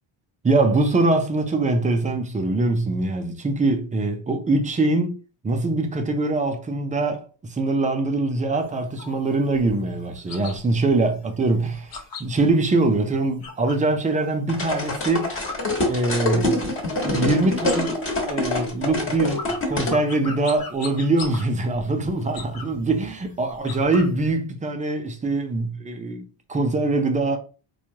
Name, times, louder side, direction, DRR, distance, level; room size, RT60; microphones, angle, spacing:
voice 1, 0.4-5.1 5.4-11.9 12.2-15.4 15.9-16.6 17.0-17.9 18.3-27.4, right 2 dB, 15° right, 0.4 m, -23 dB
sound 1, 8.6-13.9 14.3-16.4 16.7-17.2 17.5-24.3, left 4 dB, 45° left, 0.9 m, -40 dB
sound 2, 14.5-20.0, left 2 dB, 25° left, 1.3 m, -25 dB
4.4 x 2.4 x 2.7 m
cardioid pair, 140°, 50 cm